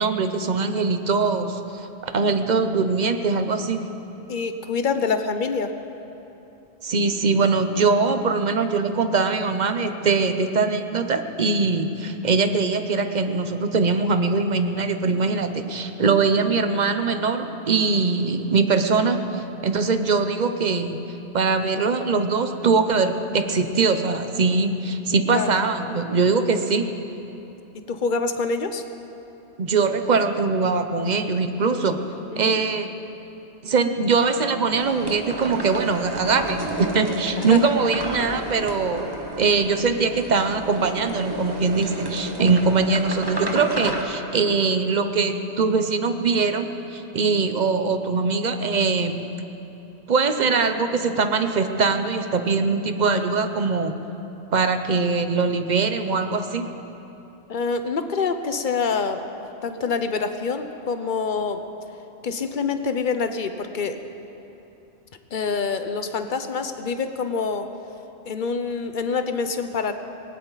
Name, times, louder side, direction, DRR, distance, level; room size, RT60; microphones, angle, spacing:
voice 1, 0.0-1.6 2.0-3.9 6.8-21.0 21.3-26.9 29.6-32.0 32.4-32.9 33.6-39.1 39.4-49.3 50.1-53.9 54.5-56.7, right 4 dB, 45° right, 8 dB, 0.9 m, -22 dB
voice 2, 4.3-5.7 25.3-25.5 27.9-28.8 32.3-32.6 37.4-37.7 57.5-59.2 59.6-61.6 62.2-64.0 65.3-67.7 68.2-69.9, left 5 dB, 50° left, 8 dB, 0.9 m, -26 dB
sound 1, 34.7-44.0, right 1 dB, 20° right, 1.2 m, -32 dB
19.0 x 19.0 x 4.0 m, 3.0 s
omnidirectional pair, 1.1 m